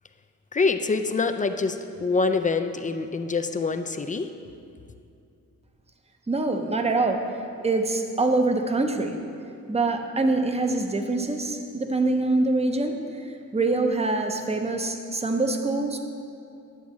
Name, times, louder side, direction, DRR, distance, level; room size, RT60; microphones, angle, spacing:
voice 1, 0.5-4.3, left 4 dB, 25° left, 7 dB, 0.3 m, -25 dB
voice 2, 6.3-7.3 7.6-9.2 9.7-16.0, right 2 dB, 20° right, 5 dB, 0.7 m, -25 dB
10.5 x 7.1 x 3.1 m, 2.5 s
cardioid pair, 80°, 32 cm